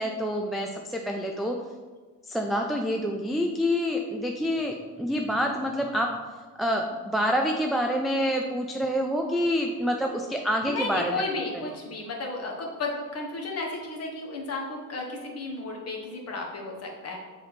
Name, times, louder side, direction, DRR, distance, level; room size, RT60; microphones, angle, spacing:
voice 1, 0.0-1.6 2.2-6.1 6.6-11.2, equal, ahead, 2 dB, 0.3 m, -27 dB
voice 2, 10.7-17.2, left 3 dB, 40° left, 0 dB, 1.5 m, -33 dB
6.8 x 4.0 x 4.2 m, 1.4 s
cardioid pair, 120°, 37 cm